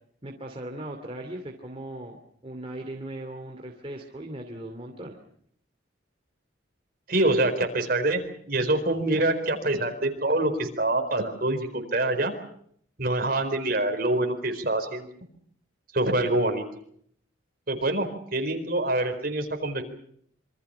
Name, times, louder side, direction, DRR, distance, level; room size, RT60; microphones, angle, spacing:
voice 1, 0.2-5.2 17.7-18.0, right 1 dB, 30° right, 2 dB, 2.6 m, -38 dB
voice 2, 7.1-12.3 13.0-15.1 15.9-16.6 17.7-18.1 18.3-19.8, right 2 dB, 50° right, 5 dB, 4.5 m, -25 dB
27.0 x 25.0 x 5.7 m, 0.64 s
head